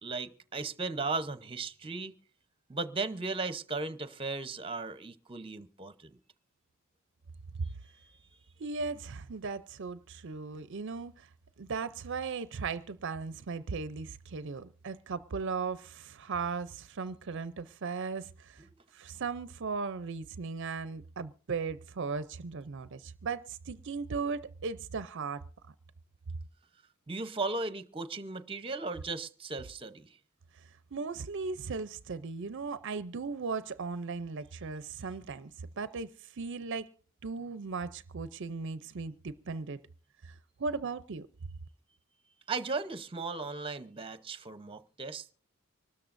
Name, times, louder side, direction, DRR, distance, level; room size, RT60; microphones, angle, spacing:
voice 1, 0.0-2.1 2.7-6.1 27.1-30.1 42.5-45.3, right 3 dB, 25° right, 0.8 m, -36 dB
voice 2, 8.6-11.3 11.6-18.6 18.9-25.4 30.9-35.5 35.8-36.1 36.4-36.9 37.2-39.8 40.2-40.3 40.6-41.3, right 4 dB, 60° right, 0.5 m, -37 dB
25.0 x 13.0 x 2.6 m
head